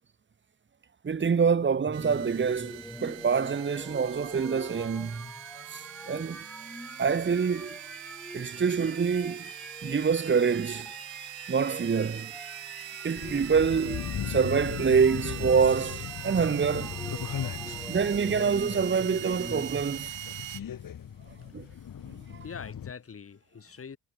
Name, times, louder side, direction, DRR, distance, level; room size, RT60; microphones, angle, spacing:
voice 1, 1.0-5.3 5.7-6.4 7.0-7.8 8.3-9.5 9.8-10.9 11.5-12.3 13.0-17.0 17.9-20.1 21.5-21.7 22.2-22.4, right 6 dB, 25° right, 1.8 m, -26 dB
sound 1, 1.8-19.9, left 1 dB, 5° left, 1.7 m, -45 dB
sound 2, 1.9-20.6, right 15 dB, 75° right, 1.5 m, -42 dB
sound 3, 13.2-22.9, left 9 dB, 45° left, 5.3 m, -38 dB
voice 2, 21.4-21.8 22.4-24.0, left 6 dB, 30° left, 5.0 m, -44 dB
cardioid pair, 170°, 45 cm